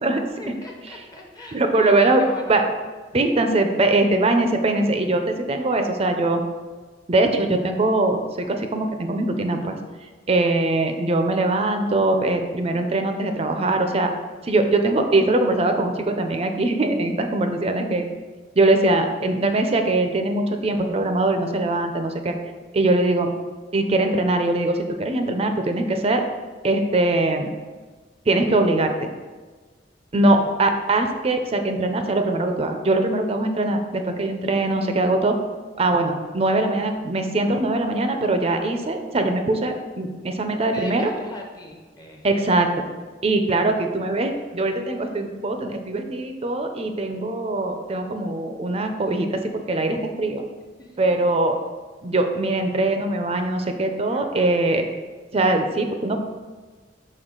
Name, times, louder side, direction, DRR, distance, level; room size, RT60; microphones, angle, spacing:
voice 1, 0.4-2.6 10.3-10.7 30.1-30.5 36.4-36.9 40.7-42.3 50.8-51.3 54.1-54.8, left 1 dB, 20° left, 0 dB, 0.7 m, -40 dB
voice 2, 1.5-2.6 3.1-6.4 7.1-9.8 10.3-14.1 14.4-18.1 18.6-22.3 22.7-23.3 23.7-26.2 26.6-27.5 28.3-28.9 30.1-35.3 35.8-41.1 42.2-42.7 43.2-50.4 51.0-51.6 52.0-54.8 55.3-56.2, right 2 dB, 30° right, 6 dB, 0.5 m, -22 dB
6.2 x 4.5 x 3.8 m, 1.4 s
head